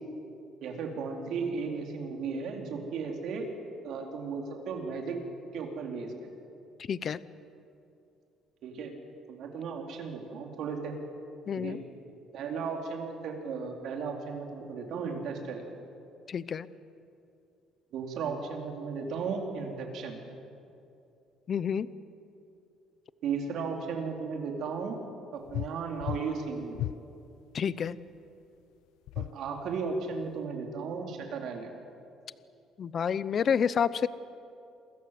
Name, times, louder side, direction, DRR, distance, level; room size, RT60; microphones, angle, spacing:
voice 1, 0.6-3.5 3.8-5.2 5.5-6.3 8.6-8.9 9.3-10.9 11.6-11.8 12.3-15.6 17.9-20.1 23.2-25.0 25.3-26.8 29.2-31.7, right 5 dB, 60° right, 2 dB, 4.2 m, -35 dB
voice 2, 6.9-7.2 11.5-11.8 16.3-16.7 21.5-21.9 27.5-28.0 32.8-34.1, left 7 dB, 35° left, 16 dB, 0.7 m, -29 dB
sound 1, 25.5-25.7 26.0-26.3 26.7-27.0 29.1-29.3, left 14 dB, 85° left, 0.5 m, -34 dB
28.0 x 23.5 x 7.8 m, 2.7 s
cardioid pair, 155°, 0 cm